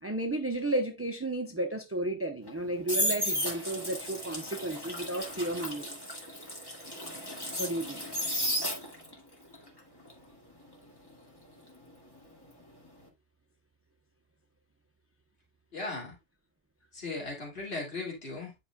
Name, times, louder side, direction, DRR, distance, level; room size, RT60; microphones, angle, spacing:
voice 1, 0.0-5.9 7.6-8.0, right 1 dB, 15° right, 0.7 m, -33 dB
squeaky faucet on off, 2.4-9.2 9.5-12.4 12.7-13.0, equal, 20° left, 2.3 m, -34 dB
voice 2, 15.7-16.2 16.9-18.5, left 3 dB, 60° left, 2.7 m, -37 dB
10.0 x 4.9 x 2.3 m
omnidirectional pair, 1.2 m